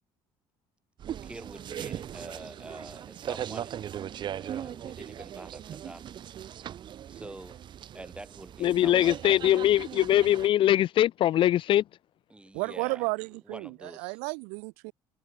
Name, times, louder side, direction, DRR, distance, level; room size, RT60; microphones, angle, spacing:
sound 1, 1.0-10.5, right 10 dB, 50° right, 1.8 m, -39 dB
voice 1, 1.2-3.8 4.4-6.1 7.1-7.6 7.9-9.4 12.3-14.2, right 2 dB, 10° right, 6.8 m, -46 dB
voice 2, 8.6-11.8, left 12 dB, 55° left, 1.1 m, -22 dB
voice 3, 12.5-14.9, right 40 dB or more, 90° right, 1.1 m, -33 dB
supercardioid pair, 95°, 10 cm